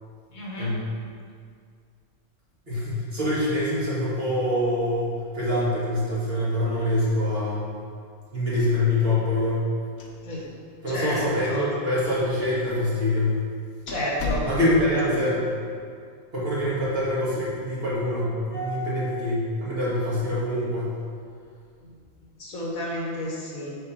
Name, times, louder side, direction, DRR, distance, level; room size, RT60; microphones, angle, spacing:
voice 1, 0.3-0.8 10.2-10.5 10.9-11.7 13.9-14.5 21.8-21.9 22.4-23.8, left 1 dB, 75° left, -4 dB, 1.8 m, -31 dB
voice 2, 2.7-7.7 8.3-9.7 10.8-13.4 14.4-15.7 16.3-21.0, left 1 dB, 40° right, -9 dB, 2.2 m, -25 dB
sound 1, 9.8-10.6 10.9-11.0 11.7-11.8 12.6-12.8 13.2-13.3 13.9-15.0, left 2 dB, 55° left, 1.0 m, -33 dB
6.5 x 4.1 x 5.6 m, 2.2 s
omnidirectional pair, 1.5 m